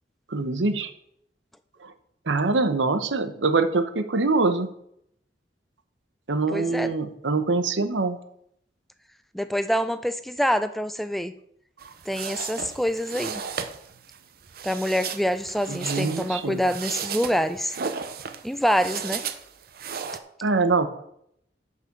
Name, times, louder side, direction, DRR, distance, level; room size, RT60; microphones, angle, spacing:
voice 1, 0.3-0.9 1.8-1.9 2.3-4.7 6.3-8.2 15.7-16.6 20.4-20.9, right 3 dB, 90° right, 10 dB, 1.0 m, -24 dB
voice 2, 6.5-6.9 9.3-11.3 12.1-13.4 14.6-17.7 18.4-19.2, equal, ahead, 11 dB, 0.4 m, -26 dB
sound 1, 11.8-20.2, right 6 dB, 55° right, 0.7 m, -35 dB
8.4 x 5.6 x 6.6 m, 0.71 s
head